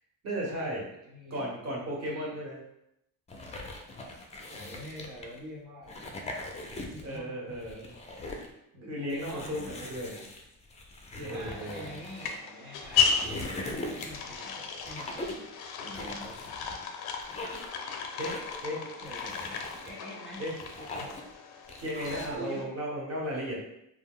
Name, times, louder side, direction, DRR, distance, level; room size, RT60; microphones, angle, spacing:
voice 1, 0.2-0.9 1.3-2.6 7.0-7.9 8.9-10.2 11.3-11.8 18.2-18.8 20.4-20.6 21.8-23.6, equal, 40° right, -3 dB, 1.0 m, -35 dB
voice 2, 1.0-2.3 4.5-6.3 6.7-7.6 8.7-10.3 11.2-15.4 15.8-16.7 18.7-19.6 19.8-20.4 20.8-21.1 22.4-22.7, equal, 70° right, -5 dB, 0.7 m, -46 dB
sound 1, 3.3-5.4 5.8-7.2 7.5-8.5 9.1-12.4 12.8-14.3 14.8-15.5 15.9-16.8 17.2-17.8 18.2-18.6 19.1-19.9 20.4-21.3 21.7-22.4, left 2 dB, 20° left, 0.3 m, -41 dB
sound 2, 11.4-22.6, left 6 dB, 75° left, 0.5 m, -35 dB
2.3 x 2.0 x 3.5 m, 0.82 s
cardioid pair, 100°, 38 cm